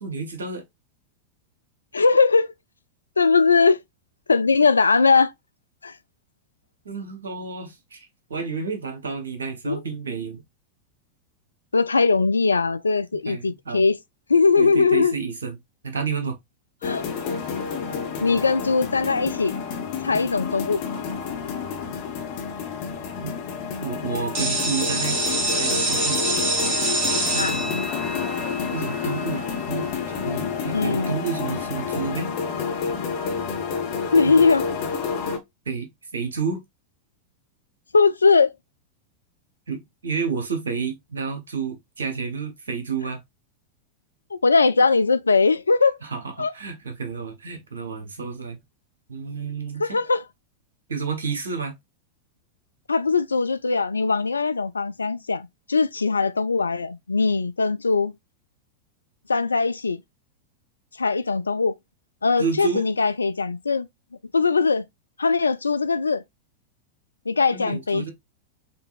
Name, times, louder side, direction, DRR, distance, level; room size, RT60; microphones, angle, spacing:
voice 1, 0.0-0.6 6.8-10.4 13.3-13.9 14.6-15.6 15.8-16.4 23.2-23.3 23.8-26.2 27.3-27.8 28.7-32.3 34.2-34.4 35.7-36.6 39.7-43.2 46.0-48.6 49.1-50.0 50.9-51.7 62.4-62.9 67.5-68.1, right 5 dB, 70° right, 1.0 m, -30 dB
voice 2, 1.9-2.5 3.2-3.8 4.3-5.3 5.8-6.0 9.7-9.8 11.7-14.0 14.3-15.1 16.8-17.0 18.2-19.5 20.0-20.8 27.4-27.6 30.7-31.1 34.1-34.7 37.9-38.5 44.3-46.0 46.4-46.5 49.8-50.2 52.9-58.1 59.3-60.0 61.0-61.7 62.2-63.9 64.3-64.8 65.2-66.2 67.3-68.1, left 4 dB, 75° left, 0.3 m, -20 dB
sound 1, 16.8-35.4, left 6 dB, 45° left, 1.0 m, -29 dB
sound 2, 24.3-30.0, right 2 dB, 40° right, 1.5 m, -26 dB
5.2 x 2.6 x 2.4 m
figure-of-eight pair, 90°, 0 cm